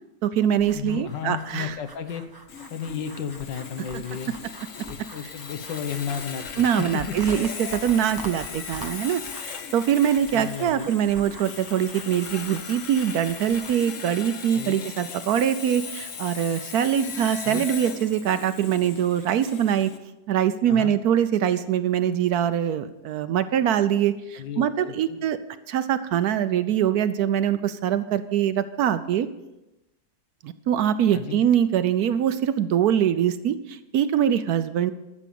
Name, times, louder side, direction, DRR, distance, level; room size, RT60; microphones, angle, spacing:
voice 1, 0.2-1.8 3.9-4.0 6.6-19.9 20.3-25.4 25.7-29.3 30.4-34.9, right 9 dB, 70° right, 12 dB, 1.0 m, -23 dB
sound 1, 0.6-13.8, right 2 dB, 20° right, 0.6 m, -45 dB
voice 2, 0.7-2.2 2.7-4.4 4.8-7.1 10.3-10.9 14.5-14.8 17.4-17.7 20.7-20.9 24.4-25.2 31.1-31.4, left 7 dB, 85° left, 9 dB, 1.7 m, -33 dB
Sawing, 2.5-20.0, left 6 dB, 55° left, 1.1 m, -38 dB
13.0 x 7.3 x 6.9 m, 0.98 s
omnidirectional pair, 1.9 m